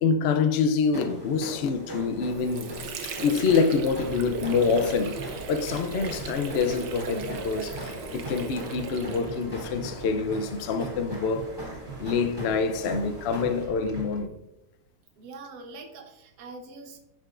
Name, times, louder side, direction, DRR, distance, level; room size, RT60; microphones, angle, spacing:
voice 1, 0.0-2.7 3.0-5.2 5.5-11.5 12.0-14.4, left 5 dB, 75° left, 0.5 m, -26 dB
sound 1, 0.9-13.6, right 1 dB, 15° right, 2.3 m, -41 dB
Water / Sink (filling or washing), 2.0-9.7, right 5 dB, 80° right, 1.4 m, -38 dB
sound 2, 3.7-14.2, right 3 dB, 40° right, 1.8 m, -42 dB
voice 2, 15.2-17.0, right 3 dB, 65° right, 1.5 m, -43 dB
11.0 x 5.2 x 2.5 m
omnidirectional pair, 1.9 m